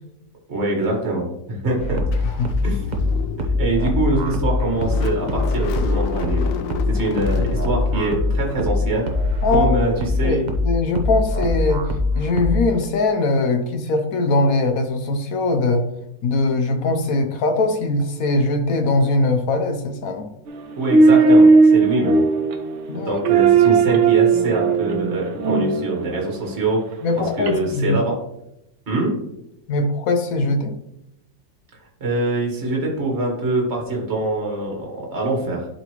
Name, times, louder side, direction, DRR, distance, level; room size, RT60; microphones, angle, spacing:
voice 1, 0.5-2.0 2.6-2.8 3.4-6.5 6.9-9.1 9.5-10.5 20.8-22.2 23.0-26.8 27.4-28.2 28.9-29.1 32.0-35.7, right 2 dB, 35° right, -1 dB, 1.8 m, -24 dB
sound 1, 1.8-12.8, left 2 dB, 60° right, 0.4 m, -23 dB
Car / Engine starting, 2.1-10.9, left 7 dB, 75° left, 1.3 m, -31 dB
voice 2, 9.4-9.9 10.2-10.4 10.6-11.9 12.1-15.8 16.2-20.3 22.9-23.2 27.0-28.0 29.7-30.8, left 2 dB, 60° left, 5 dB, 1.0 m, -21 dB
sound 2, 20.5-26.4 27.5-27.6, right 4 dB, 85° right, 1.6 m, -16 dB
11.0 x 3.9 x 3.0 m, 0.82 s
omnidirectional pair, 2.1 m